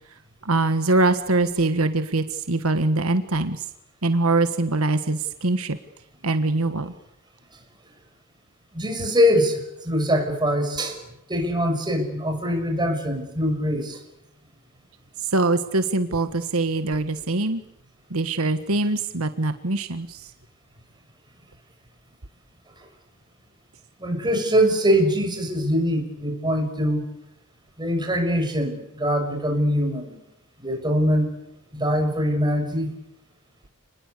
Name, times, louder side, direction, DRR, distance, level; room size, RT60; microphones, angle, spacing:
voice 1, 0.4-3.6 4.0-5.8 6.2-6.9 15.2-17.6 18.1-20.3, right 2 dB, 75° right, 10 dB, 1.5 m, -23 dB
voice 2, 8.7-11.0 11.3-14.0 22.8-22.9 24.0-27.0 27.8-30.2 30.6-31.3 31.7-32.9, equal, 20° right, 4 dB, 6.5 m, -23 dB
30.0 x 20.5 x 8.4 m, 0.84 s
head